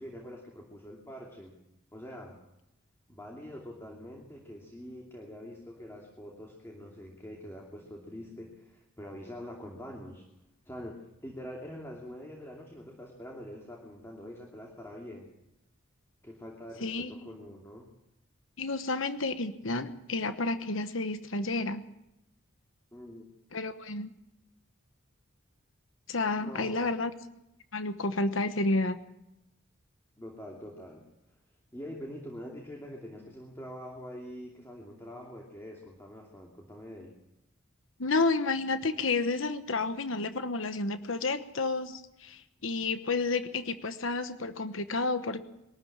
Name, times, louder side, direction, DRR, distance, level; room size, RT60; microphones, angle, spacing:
voice 1, 0.0-1.5 1.9-2.4 3.1-10.2 10.6-15.3 16.2-17.9 22.9-23.3 26.4-26.9 30.2-31.0 31.7-37.1, equal, 10° left, 0 dB, 2.7 m, -44 dB
voice 2, 16.8-17.3 18.6-21.8 23.5-24.1 26.1-27.1 27.7-29.0 38.0-45.4, left 3 dB, 70° left, 10 dB, 1.1 m, -30 dB
22.5 x 13.0 x 8.8 m, 0.87 s
head